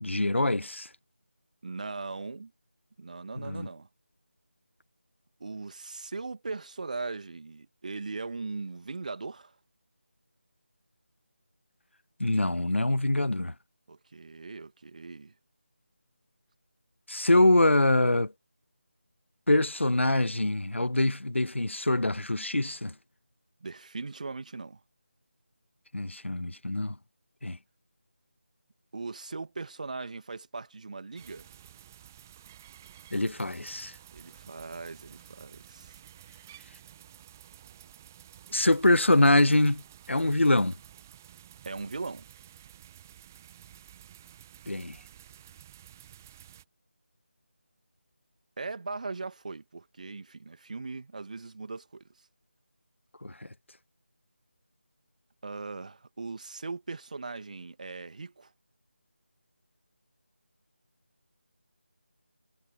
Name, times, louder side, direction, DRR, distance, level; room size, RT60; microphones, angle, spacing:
voice 1, 0.0-0.9 3.4-3.7 12.2-13.5 17.1-18.3 19.5-22.9 25.9-27.0 27.4-27.6 33.1-33.9 38.5-40.7 44.7-45.0 53.2-53.5, left 2 dB, 80° left, 0.6 m, -24 dB
voice 2, 1.6-2.5 3.0-3.9 5.4-9.6 13.9-15.3 23.6-24.8 28.9-31.5 34.1-36.0 41.6-42.3 48.6-52.0 55.4-58.5, right 3 dB, 40° right, 2.4 m, -39 dB
sound 1, 31.1-46.6, right 11 dB, 15° right, 1.1 m, -52 dB
figure-of-eight pair, 160°, 6 cm